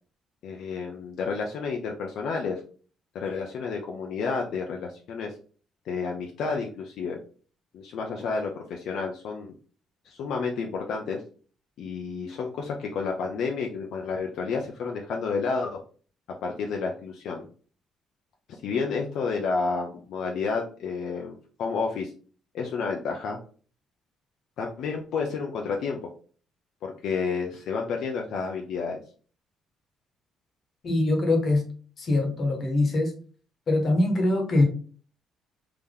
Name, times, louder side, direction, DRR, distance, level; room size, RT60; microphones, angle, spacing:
voice 1, 0.4-2.6 3.1-5.3 5.9-7.2 7.7-9.5 10.0-11.2 11.8-15.8 16.4-17.5 18.5-22.1 22.5-23.4 24.6-26.0 26.8-29.0, left 4 dB, 60° left, 0.6 m, -30 dB
voice 2, 30.8-31.6 32.0-33.1 33.7-34.6, left 2 dB, 35° left, 1.1 m, -23 dB
3.5 x 2.9 x 3.6 m
cardioid pair, 180°, 0 cm